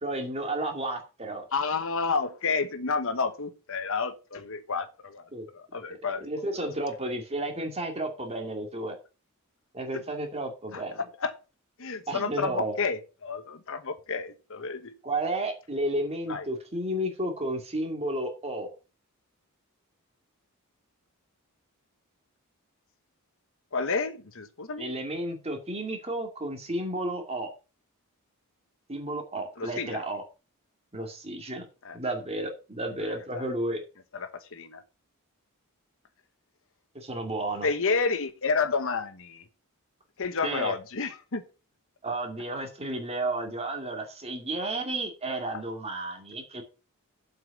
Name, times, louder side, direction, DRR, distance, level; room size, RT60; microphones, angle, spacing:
voice 1, 0.0-1.4 5.3-5.5 6.2-9.0 9.7-11.0 12.1-12.8 15.0-18.7 24.8-27.5 28.9-30.2 30.9-31.7 31.9-33.8 36.9-37.7 40.4-40.7 42.0-46.6, right 1 dB, 30° right, 2.3 m, -32 dB
voice 2, 1.5-6.3 6.6-6.7 9.9-10.0 10.7-10.8 11.2-11.3 11.8-14.9 16.3-16.5 23.7-24.9 29.6-30.0 31.8-32.0 33.0-33.4 34.1-34.8 37.6-39.4 40.2-41.4 45.5-45.6, left 4 dB, 65° left, 1.1 m, -30 dB
7.7 x 5.6 x 6.5 m
head